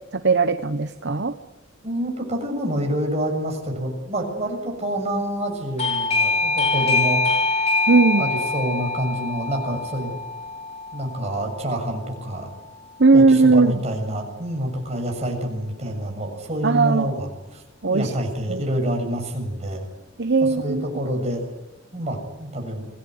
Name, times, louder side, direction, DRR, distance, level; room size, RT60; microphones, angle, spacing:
voice 1, 0.1-1.3 7.9-8.2 13.0-13.7 16.6-17.1 17.8-18.1 18.5-18.6 20.2-20.8, right 3 dB, 60° right, 9 dB, 1.0 m, -18 dB
voice 2, 1.8-7.3 8.2-10.2 10.9-12.6 13.1-17.6 17.9-19.8 20.4-21.5 21.9-22.9, right 1 dB, 35° right, 2 dB, 7.3 m, -27 dB
Doorbell, 5.8-12.3, left 3 dB, 30° left, 4.5 m, -24 dB
26.5 x 18.5 x 9.6 m, 1.1 s
head